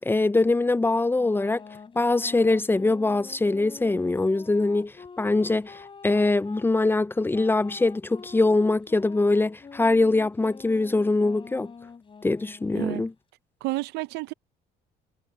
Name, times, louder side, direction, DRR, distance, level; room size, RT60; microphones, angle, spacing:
voice 1, 0.0-1.6 2.0-5.8 6.0-11.7 12.2-13.1, left 2 dB, 15° left, 0.5 m, -23 dB
sound 1, 1.1-6.7 7.3-12.9, left 5 dB, 30° left, 4.1 m, -46 dB
voice 2, 13.6-14.3, right 19 dB, 90° right, 0.6 m, -30 dB
cardioid pair, 110°, 17 cm